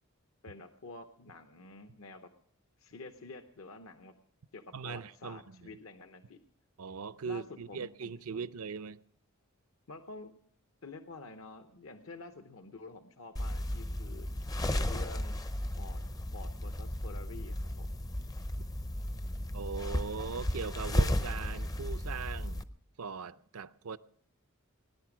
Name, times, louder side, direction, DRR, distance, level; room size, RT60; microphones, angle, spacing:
voice 1, 0.4-2.3 2.8-4.2 4.5-6.4 7.3-8.5 9.9-10.3 10.8-14.3 14.7-15.4 15.8-16.0 16.3-18.0, left 3 dB, 65° left, 0.8 m, -49 dB
voice 2, 4.7-5.8 6.8-9.0 19.5-22.6 23.0-24.0, right 5 dB, 80° right, 0.6 m, -40 dB
sound 1, 13.4-22.6, left 1 dB, 15° left, 0.5 m, -34 dB
18.5 x 10.5 x 6.0 m
head